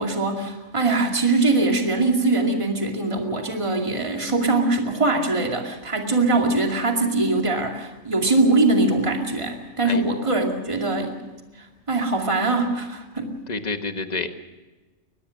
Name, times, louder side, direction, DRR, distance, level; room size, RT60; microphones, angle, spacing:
voice 1, 0.0-11.2 11.6-13.3, right 2 dB, 20° right, 2 dB, 2.5 m, -22 dB
voice 2, 13.5-14.3, left 3 dB, 30° left, 7 dB, 1.5 m, -28 dB
23.5 x 20.0 x 6.4 m, 1.2 s
omnidirectional pair, 1.4 m